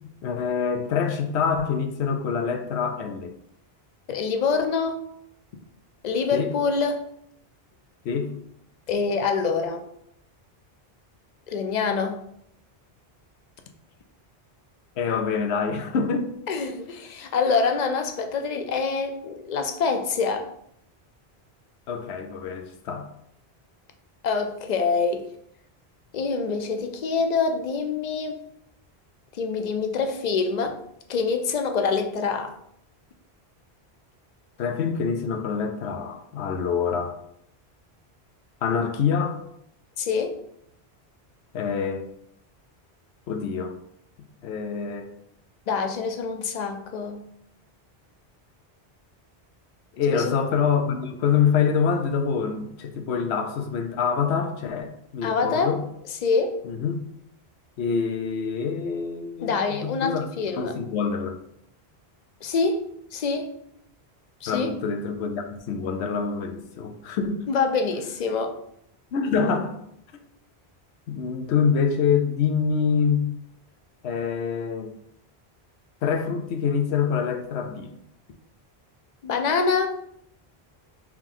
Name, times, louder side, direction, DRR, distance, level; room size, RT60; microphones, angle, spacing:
voice 1, 0.2-3.4 6.3-6.5 8.0-8.3 15.0-16.3 21.9-23.1 34.6-37.2 38.6-39.4 41.5-42.0 43.3-43.7 44.4-45.1 50.0-55.8 56.6-57.0 57.8-59.6 59.8-60.2 60.6-61.4 64.5-67.5 69.1-69.8 71.1-73.3 74.0-74.9 76.0-77.9, left 6 dB, 85° left, 6 dB, 0.9 m, -25 dB
voice 2, 4.1-5.0 6.0-7.0 8.9-9.8 11.5-12.2 16.5-20.5 24.2-25.3 26.1-28.4 29.3-30.8 31.1-32.5 40.0-40.4 45.7-47.2 50.1-50.4 55.2-55.7 56.2-56.6 59.4-60.8 62.4-62.8 63.1-63.5 64.4-64.7 67.5-68.6 79.2-79.9, left 5 dB, 55° left, 6 dB, 0.5 m, -25 dB
3.6 x 3.0 x 3.7 m, 0.72 s
omnidirectional pair, 1.1 m